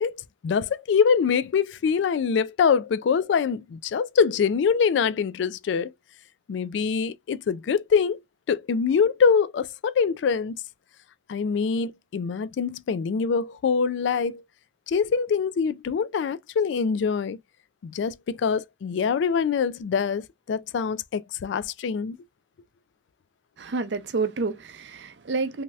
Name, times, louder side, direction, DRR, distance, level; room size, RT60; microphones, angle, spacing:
voice 1, 0.0-5.9 6.5-8.2 8.5-10.6 11.3-14.4 14.9-17.4 17.8-22.2, left 6 dB, 75° left, 0.3 m, -24 dB
voice 2, 23.6-25.6, right 4 dB, 70° right, 0.5 m, -29 dB
3.1 x 2.7 x 2.3 m
head